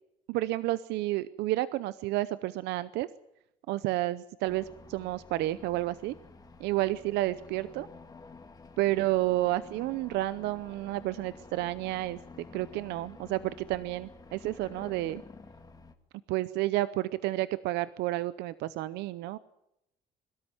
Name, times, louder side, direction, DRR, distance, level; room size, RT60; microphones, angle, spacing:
voice 1, 0.3-3.1 3.7-6.1 6.6-7.9 8.8-12.2 12.5-15.2 16.3-19.4, right 16 dB, 85° right, 16 dB, 0.7 m, -30 dB
sound 1, 4.5-15.9, left 3 dB, 20° left, 1.9 m, -51 dB
23.0 x 13.0 x 9.3 m, 0.84 s
cardioid pair, 110°, 17 cm